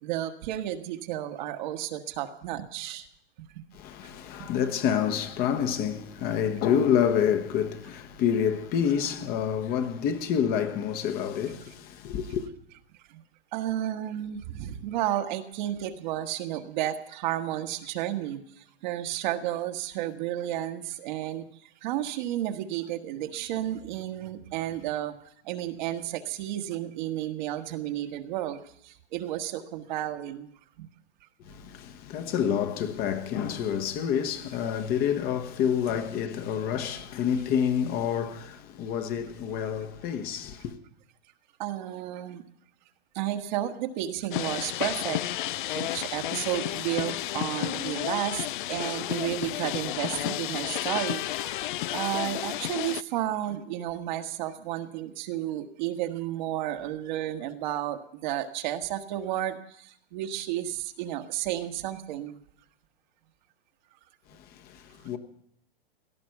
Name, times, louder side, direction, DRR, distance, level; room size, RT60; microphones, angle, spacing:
voice 1, 0.0-3.1 3.4-3.7 4.4-4.5 11.5-11.6 12.2-12.3 13.1-13.2 13.5-21.4 21.8-25.1 25.4-30.5 30.8-30.9 41.6-42.4 43.1-45.2 45.7-51.6 51.9-62.4, right 12 dB, 45° right, 1.4 m, -32 dB
voice 2, 3.7-12.4 31.4-40.7 64.5-65.2, left 8 dB, 30° left, 1.1 m, -28 dB
sound 1, 44.3-53.0, left 15 dB, 55° left, 0.5 m, -32 dB
18.0 x 13.0 x 5.9 m
hypercardioid pair, 140°, 31 cm